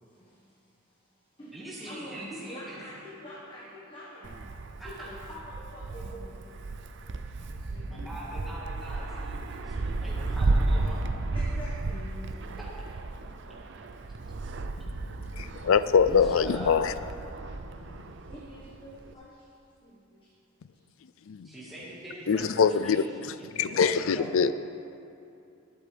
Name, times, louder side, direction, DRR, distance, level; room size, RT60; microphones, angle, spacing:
voice 1, 0.0-4.4 4.8-6.4 7.5-8.6 11.3-12.5 14.0-14.1 15.1-15.2 18.2-19.5 19.8-20.3, equal, 25° left, -7 dB, 1.5 m, -46 dB
voice 2, 1.5-2.9 4.8-5.1 7.3-11.0 16.0-16.8 21.4-24.4, right 1 dB, ahead, -9 dB, 1.8 m, -43 dB
Wind, 4.2-19.1, right 2 dB, 55° right, 0.5 m, -33 dB
voice 3, 15.0-16.9 21.3-21.5 22.3-24.5, left 6 dB, 65° left, 14 dB, 0.4 m, -24 dB
20.5 x 8.2 x 3.5 m, 2.6 s
head